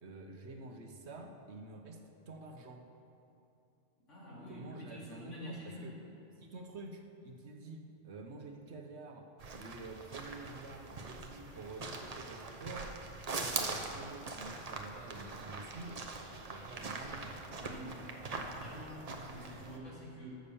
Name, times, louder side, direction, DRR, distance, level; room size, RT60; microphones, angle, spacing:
voice 1, 0.0-2.0 2.3-2.8 4.5-5.9 6.4-9.3 9.5-12.9 13.5-16.0 16.5-17.4, right 3 dB, 65° right, 3 dB, 1.3 m, -48 dB
voice 2, 4.0-5.9 17.6-20.4, equal, 80° left, -5 dB, 2.9 m, -47 dB
sound 1, 9.4-19.8, right 3 dB, 35° right, 0.8 m, -42 dB
12.5 x 6.5 x 7.0 m, 2.8 s
omnidirectional pair, 1.2 m